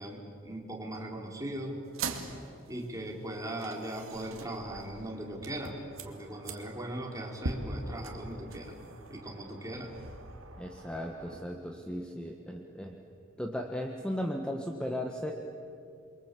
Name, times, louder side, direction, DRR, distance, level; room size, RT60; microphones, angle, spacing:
voice 1, 0.0-1.8 2.7-5.8 6.0-8.7 9.1-9.9, right 1 dB, 15° right, 0 dB, 4.1 m, -39 dB
smoking break winter, 1.8-11.4, right 3 dB, 80° right, 2.5 m, -43 dB
voice 2, 10.6-13.0 13.4-15.3, equal, 5° left, 2 dB, 1.4 m, -36 dB
29.0 x 23.5 x 8.5 m, 2.5 s
head